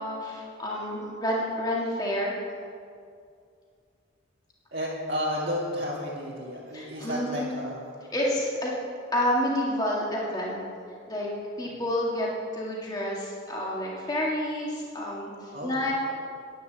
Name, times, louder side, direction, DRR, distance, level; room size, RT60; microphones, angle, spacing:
voice 1, 0.0-2.4 6.7-7.6 8.1-8.8 9.1-10.6 11.1-11.3 11.6-12.3 12.5-15.9, left 1 dB, 20° left, -4 dB, 2.1 m, -29 dB
voice 2, 4.7-8.0 15.5-15.9, equal, 55° right, -8 dB, 2.7 m, -32 dB
10.5 x 9.7 x 8.0 m, 2.3 s
head